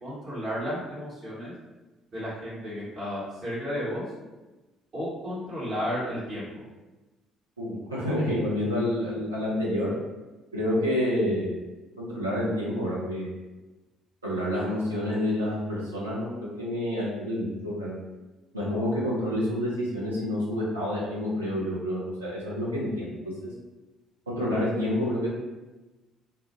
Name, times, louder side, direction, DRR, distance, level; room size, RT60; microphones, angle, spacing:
voice 1, 0.0-1.5 2.1-4.0 4.9-6.5, equal, 45° right, -9 dB, 1.0 m, -33 dB
voice 2, 7.6-9.9 10.5-11.5 12.0-13.3 14.2-18.0 18.5-23.5 24.3-25.3, left 1 dB, 85° right, -7 dB, 0.6 m, -28 dB
2.2 x 2.1 x 2.9 m, 1.1 s
figure-of-eight pair, 50°, 0 cm